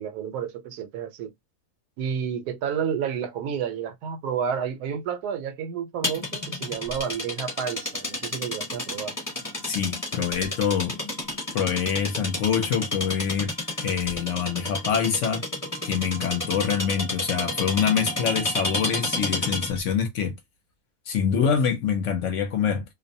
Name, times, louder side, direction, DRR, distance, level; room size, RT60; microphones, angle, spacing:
voice 1, 0.0-1.3 2.0-9.1, right 7 dB, 85° right, 1.1 m, -30 dB
sound 1, 6.0-19.8, left 1 dB, 15° left, 0.9 m, -31 dB
voice 2, 9.6-11.0 11.5-13.5 13.8-15.4 15.8-20.3 21.1-22.8, left 7 dB, 65° left, 0.8 m, -25 dB
2.5 x 2.1 x 2.6 m
omnidirectional pair, 1.6 m